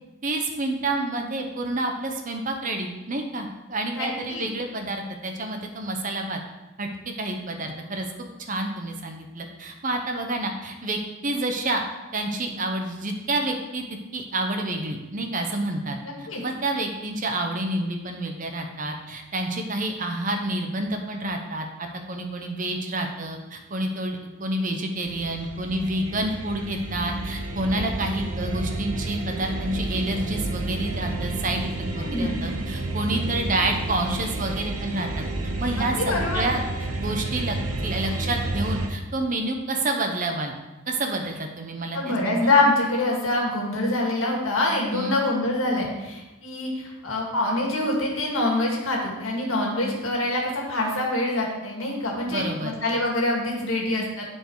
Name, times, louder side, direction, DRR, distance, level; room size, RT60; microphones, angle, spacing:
voice 1, 0.2-6.4 6.8-6.9 7.2-8.1 8.4-11.8 12.1-13.8 14.1-35.2 35.6-36.6 37.0-37.6 37.8-40.5 40.9-42.5 44.9-45.2 52.3-52.8, right 2 dB, 35° right, 4 dB, 0.8 m, -29 dB
voice 2, 3.9-4.5 16.0-16.4 27.7-27.8 32.0-32.4 35.8-36.5 41.9-54.3, left 2 dB, 65° left, -1 dB, 1.9 m, -25 dB
sound 1, 25.0-38.9, right 2 dB, 80° right, 0.9 m, -30 dB
9.9 x 4.6 x 4.7 m, 1.1 s
head